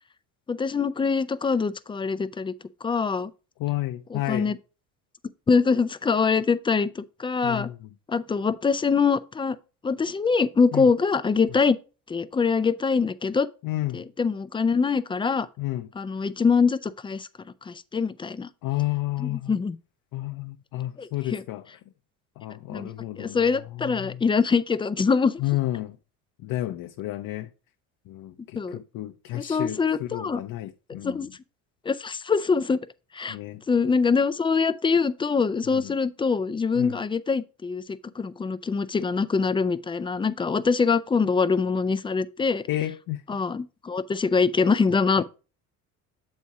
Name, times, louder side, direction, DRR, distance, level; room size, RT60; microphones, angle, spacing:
voice 1, 0.5-2.5 2.8-3.3 4.1-4.6 5.5-7.7 8.1-9.6 9.8-11.8 12.1-13.5 13.9-15.5 16.0-17.3 17.7-18.5 19.5-19.8 21.0-21.4 22.7-22.9 23.2-25.4 28.6-28.8 29.3-30.4 31.0-31.3 31.9-32.8 33.1-33.4 33.7-37.8 38.2-42.7 43.3-45.2, left 5 dB, 15° left, 0.3 m, -24 dB
voice 2, 3.6-4.5 7.4-7.9 10.7-10.9 11.5-11.6 13.6-14.1 15.6-15.9 18.6-19.6 20.1-21.7 22.4-24.2 25.4-26.0 26.4-27.5 28.1-31.3 33.3-33.6 35.6-35.9 36.7-37.0 42.7-43.2 45.2-45.3, left 15 dB, 55° left, 0.6 m, -31 dB
7.1 x 4.2 x 4.7 m
supercardioid pair, 85°, 40 cm